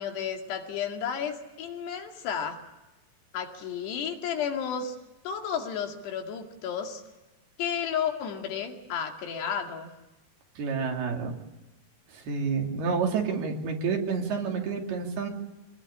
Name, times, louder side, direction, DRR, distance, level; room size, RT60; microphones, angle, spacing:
voice 1, 0.0-2.6 3.3-5.0 5.2-7.0 7.6-9.9, left 7 dB, 85° left, 3 dB, 4.5 m, -32 dB
voice 2, 10.6-11.3 12.1-15.3, right 5 dB, 70° right, 1 dB, 4.7 m, -29 dB
25.5 x 20.0 x 10.0 m, 1.1 s
omnidirectional pair, 4.7 m